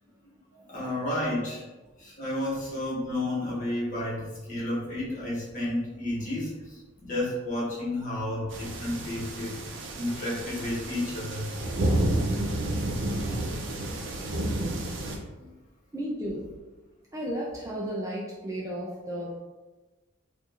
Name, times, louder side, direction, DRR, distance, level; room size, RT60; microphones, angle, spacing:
voice 1, 0.5-1.6 2.0-9.5 9.9-11.5 15.4-15.5, left 1 dB, 40° left, -7 dB, 1.1 m, -31 dB
sound 1, 8.5-15.2, right 1 dB, 65° right, 0.5 m, -30 dB
voice 2, 15.9-16.5 17.1-19.4, equal, 15° right, -4 dB, 0.3 m, -34 dB
4.3 x 2.5 x 2.4 m, 1.2 s
head